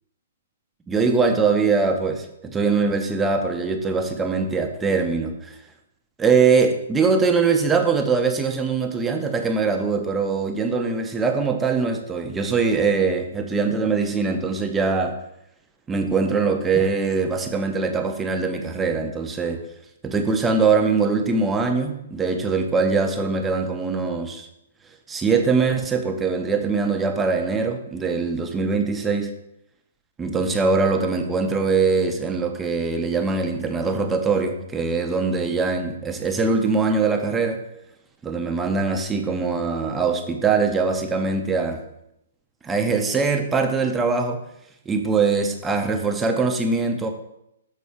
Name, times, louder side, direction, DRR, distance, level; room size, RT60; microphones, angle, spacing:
voice 1, 0.9-5.6 6.2-15.1 15.9-19.6 20.0-24.5 25.1-29.3 30.2-37.6 38.2-41.8 42.6-44.4 44.9-47.1, right 4 dB, 10° right, 4 dB, 0.7 m, -22 dB
6.9 x 4.2 x 4.9 m, 0.82 s
hypercardioid pair, 130°, 0 cm